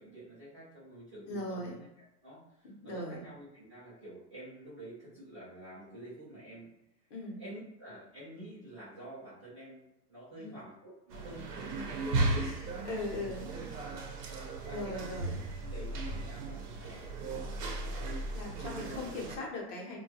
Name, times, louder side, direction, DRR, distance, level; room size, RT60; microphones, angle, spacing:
voice 1, 0.0-1.9 2.2-6.7 7.4-9.8 10.1-14.0 14.6-18.1 18.8-19.3, right 1 dB, 20° right, -13 dB, 0.3 m, -49 dB
voice 2, 1.3-1.8 2.6-3.2 7.1-7.4 10.4-10.5 12.3-12.5 12.8-13.5 14.4-15.3 18.3-20.0, left 2 dB, 50° left, -2 dB, 0.8 m, -39 dB
sound 1, 11.1-19.4, right 2 dB, 75° right, 0.8 m, -36 dB
2.7 x 2.2 x 2.7 m, 0.88 s
supercardioid pair, 160°, 47 cm